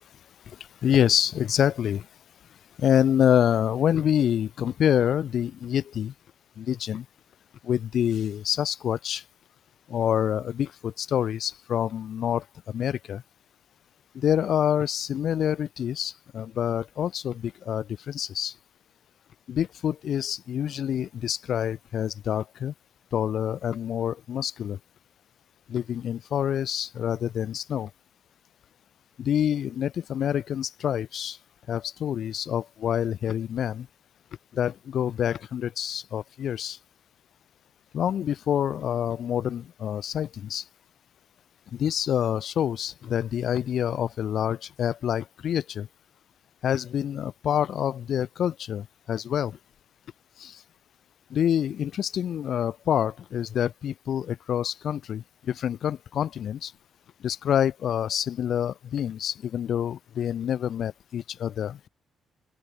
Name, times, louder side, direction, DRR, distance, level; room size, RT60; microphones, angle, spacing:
voice 1, 0.8-2.0 2.8-6.1 6.6-7.0 7.7-9.2 9.9-12.4 12.7-13.2 14.2-18.5 19.5-22.7 23.1-24.8 25.7-27.9 29.2-31.4 31.7-33.8 34.6-36.8 37.9-40.6 41.8-45.9 46.6-49.5 51.3-55.2 55.6-56.7 57.2-61.8, left 9 dB, 65° left, 1.0 m, -27 dB
cardioid pair, 90°, 0 cm